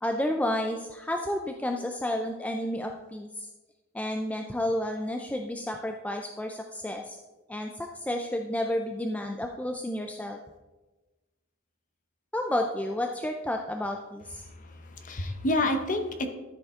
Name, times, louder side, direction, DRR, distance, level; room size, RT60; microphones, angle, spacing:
voice 1, 0.0-3.5 3.9-7.2 7.5-10.4 12.3-14.4, left 1 dB, 5° left, 3 dB, 0.4 m, -31 dB
voice 2, 14.4-16.3, left 1 dB, 35° left, 6 dB, 0.9 m, -29 dB
13.0 x 5.3 x 3.6 m, 1.2 s
head